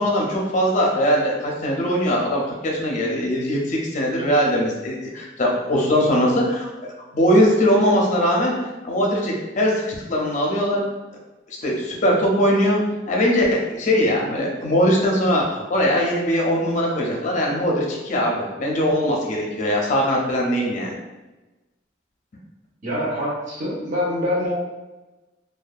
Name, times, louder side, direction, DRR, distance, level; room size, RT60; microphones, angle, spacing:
voice 1, 0.0-6.7 7.1-8.5 8.8-10.9 11.6-21.0, equal, 40° left, -2 dB, 0.5 m, -21 dB
voice 2, 22.8-24.5, left 1 dB, 45° right, -6 dB, 0.8 m, -25 dB
2.6 x 2.3 x 2.3 m, 1.1 s
head